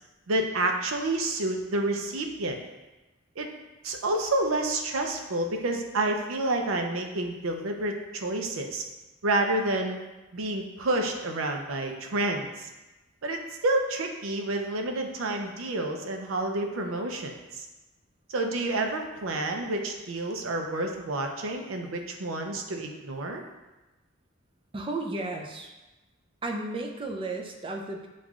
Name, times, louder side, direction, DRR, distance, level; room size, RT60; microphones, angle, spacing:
voice 1, 0.3-2.6 3.4-3.5 3.8-8.8 9.2-10.0 10.3-12.7 13.2-17.7 18.3-23.4, right 2 dB, 85° right, 3 dB, 0.5 m, -29 dB
voice 2, 24.7-25.7 26.4-28.1, right 2 dB, 25° right, 2 dB, 0.4 m, -33 dB
7.1 x 2.4 x 2.4 m, 1.1 s
head